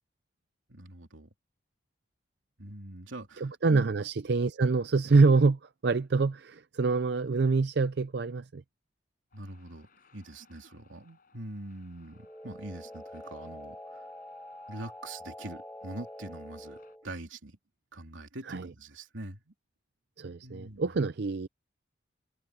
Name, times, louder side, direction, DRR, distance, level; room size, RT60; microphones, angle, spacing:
voice 1, 0.7-1.3 2.6-3.9 9.3-14.1 14.7-17.6 17.9-19.5 20.4-21.0, right 1 dB, 75° right, 3.2 m, -44 dB
voice 2, 3.4-8.6 18.4-18.7 20.2-21.5, right 4 dB, 55° right, 0.5 m, -26 dB
sound 1, 9.3-17.0, left 5 dB, 45° left, 5.6 m, -65 dB
sound 2, 12.1-17.1, left 1 dB, 10° left, 1.4 m, -46 dB
head